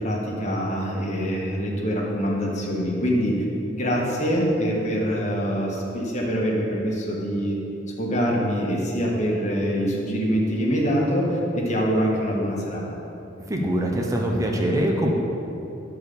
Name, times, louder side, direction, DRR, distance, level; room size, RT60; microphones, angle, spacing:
voice 1, 0.0-3.4 3.7-7.6 8.0-12.8, equal, 40° left, -3 dB, 1.7 m, -24 dB
voice 2, 13.5-15.1, right 1 dB, 20° right, 0 dB, 0.8 m, -23 dB
9.9 x 4.7 x 6.9 m, 2.8 s
head